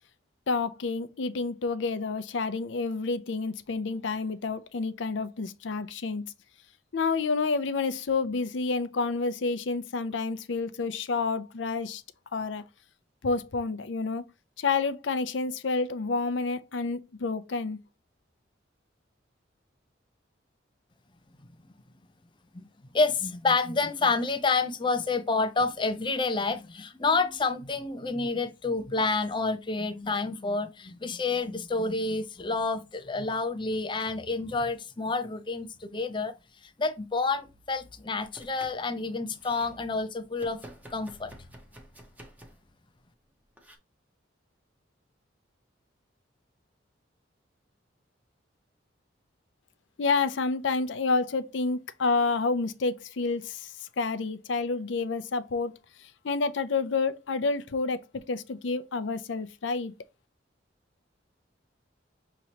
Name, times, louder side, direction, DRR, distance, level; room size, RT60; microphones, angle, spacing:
voice 1, 0.5-6.3 6.9-12.0 12.3-12.6 13.2-14.2 14.6-17.8 50.0-55.7 56.0-59.9, left 4 dB, 80° left, 0.6 m, -29 dB
voice 2, 22.8-36.3 36.6-40.6 40.9-41.4, left 3 dB, 25° left, 0.5 m, -29 dB
Domestic sounds home sounds, 38.2-38.9 39.2-39.7 40.4-42.7 43.6-43.8, right 1 dB, 10° right, 0.8 m, -50 dB
6.2 x 2.9 x 2.9 m
head